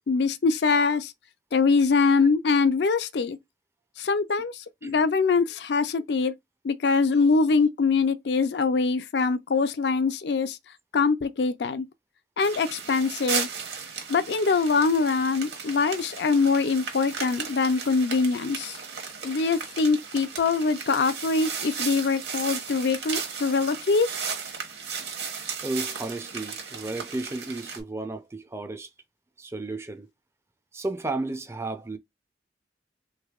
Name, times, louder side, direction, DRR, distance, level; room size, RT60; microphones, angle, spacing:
voice 1, 0.1-1.1 1.5-3.4 4.0-6.3 6.6-10.6 10.9-11.9 12.4-13.5 14.1-18.8 19.2-24.1, left 4 dB, 65° left, 0.4 m, -23 dB
sound 1, 12.4-27.8, right 6 dB, 65° right, 1.1 m, -35 dB
voice 2, 25.6-28.9 29.4-30.1 30.7-32.0, right 2 dB, 15° right, 0.4 m, -33 dB
3.4 x 3.2 x 2.3 m
head